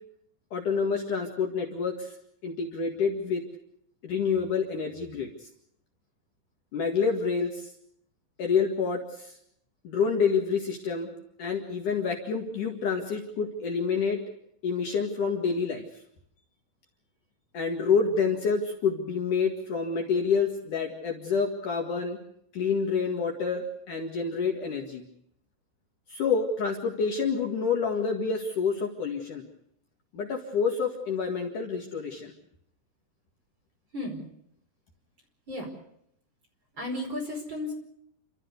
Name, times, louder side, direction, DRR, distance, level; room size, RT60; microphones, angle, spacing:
voice 1, 0.5-2.1 2.4-3.4 4.0-5.3 6.7-7.7 8.4-9.3 9.8-11.1 11.4-14.2 14.6-15.8 17.5-22.2 22.5-25.0 26.1-29.4 30.1-32.3, left 5 dB, 55° left, 1 dB, 3.1 m, -28 dB
voice 2, 33.9-34.2 35.5-35.7 36.8-37.7, left 1 dB, 30° right, 1 dB, 5.2 m, -33 dB
29.5 x 13.5 x 8.2 m, 0.73 s
omnidirectional pair, 4.9 m